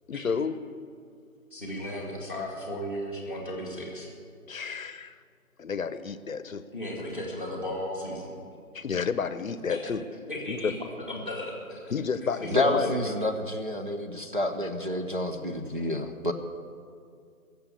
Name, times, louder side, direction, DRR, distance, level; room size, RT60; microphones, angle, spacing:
voice 1, 0.1-0.7 4.5-5.2 5.6-6.7 8.7-10.0 10.5-10.7 11.9-12.9, left 5 dB, 65° left, 14 dB, 0.7 m, -31 dB
voice 2, 1.5-4.1 6.7-8.3 9.7-9.9 10.3-11.9 12.4-13.1, left 1 dB, 10° right, -1 dB, 1.2 m, -35 dB
voice 3, 12.5-16.3, left 1 dB, 35° right, 2 dB, 0.6 m, -29 dB
17.5 x 7.1 x 8.3 m, 2.2 s
figure-of-eight pair, 170°, 44 cm